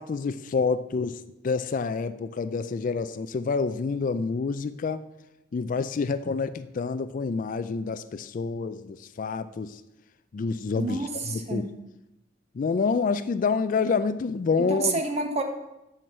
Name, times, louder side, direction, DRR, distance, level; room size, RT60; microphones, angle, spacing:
voice 1, 0.0-5.0 5.5-9.8 10.3-11.7 12.5-15.0, left 4 dB, 45° left, 13 dB, 0.3 m, -28 dB
voice 2, 10.8-11.7 14.7-15.4, right 3 dB, 35° right, 5 dB, 1.0 m, -29 dB
7.6 x 5.8 x 6.6 m, 0.93 s
head